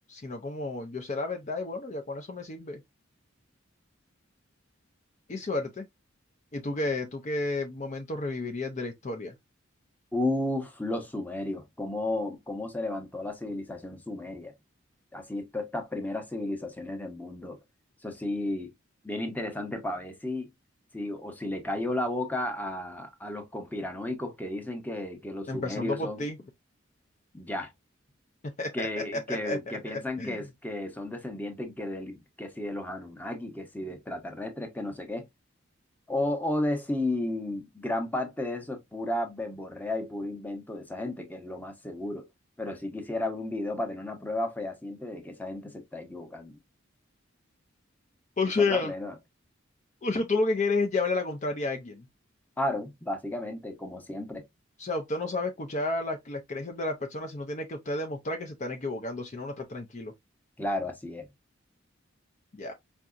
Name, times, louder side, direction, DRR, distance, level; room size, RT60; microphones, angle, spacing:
voice 1, 0.1-2.8 5.3-5.8 6.5-9.4 25.5-26.4 28.6-30.5 48.4-48.9 50.0-52.1 54.8-60.1 62.5-62.7, left 3 dB, 35° left, 0.5 m, -31 dB
voice 2, 10.1-14.5 15.1-17.6 18.0-18.7 19.0-20.5 20.9-26.2 27.3-27.7 28.7-35.2 36.1-42.3 42.6-46.6 48.6-49.1 52.6-54.4 60.6-61.3, left 1 dB, 10° left, 0.8 m, -33 dB
4.6 x 2.7 x 2.4 m
head